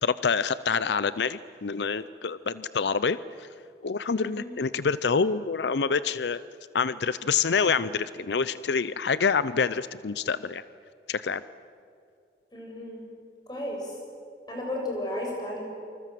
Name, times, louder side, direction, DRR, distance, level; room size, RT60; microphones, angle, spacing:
voice 1, 0.0-3.5 3.8-6.4 6.7-10.6 11.1-11.4, left 5 dB, 75° left, 16 dB, 0.5 m, -27 dB
voice 2, 4.2-4.5 12.5-13.0 13.5-13.9 14.5-15.7, left 1 dB, 25° left, -1 dB, 7.1 m, -34 dB
28.0 x 26.0 x 7.7 m, 2.5 s
head